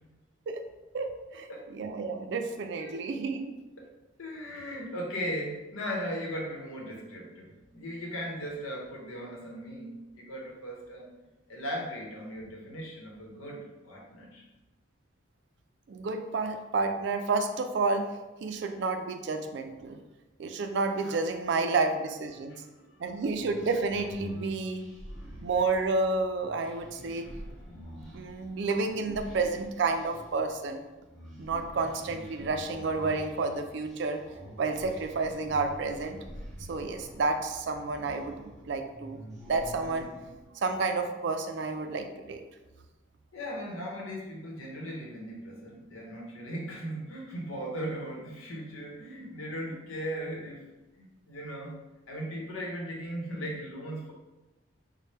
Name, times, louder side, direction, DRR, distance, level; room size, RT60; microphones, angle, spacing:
voice 1, 0.9-3.5 15.9-18.1 18.4-20.0 20.4-22.6 23.0-24.8 25.4-27.3 28.1-30.8 31.4-34.2 34.6-36.2 36.7-39.2 39.5-40.1 40.5-42.4, right 3 dB, 55° right, 6 dB, 0.3 m, -30 dB
voice 2, 4.2-11.1 11.5-14.4 22.4-23.0 24.6-24.7 43.3-50.6 51.0-51.8 52.1-54.1, equal, 90° left, -2 dB, 0.9 m, -38 dB
sound 1, 23.0-40.5, equal, ahead, 0.7 m, -47 dB
4.2 x 2.1 x 3.3 m, 1.1 s
head